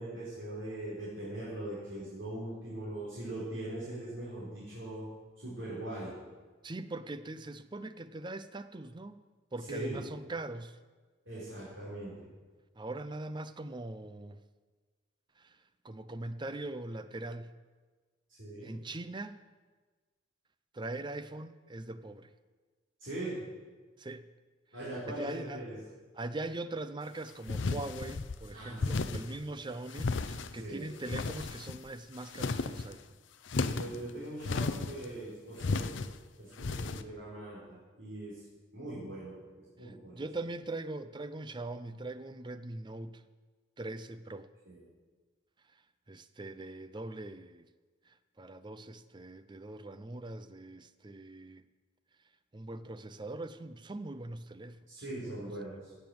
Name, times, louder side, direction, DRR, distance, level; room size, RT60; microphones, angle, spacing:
voice 1, 0.0-5.1 5.4-6.1 9.7-10.0 11.3-12.2 18.4-18.7 23.0-23.4 24.7-25.8 28.5-29.2 30.5-30.9 33.6-36.0 36.4-38.4 38.7-40.2 44.7-44.8 54.9-55.9, right 1 dB, 70° right, 4.3 m, -41 dB
voice 2, 6.6-9.2 9.5-10.8 12.8-14.4 15.4-15.5 15.8-17.6 18.6-19.4 20.7-22.3 24.0-24.3 25.1-25.7 26.1-33.0 39.8-43.2 43.8-44.5 46.1-47.7 48.1-51.6 52.5-55.5, right 2 dB, 25° right, 0.5 m, -41 dB
sound 1, 27.5-28.4 28.8-29.4 29.9-30.6 31.0-31.9 32.2-32.9 33.5-34.0 34.4-35.1 35.6-36.1 36.6-37.0, left 3 dB, 70° left, 0.6 m, -34 dB
16.5 x 7.0 x 7.7 m
head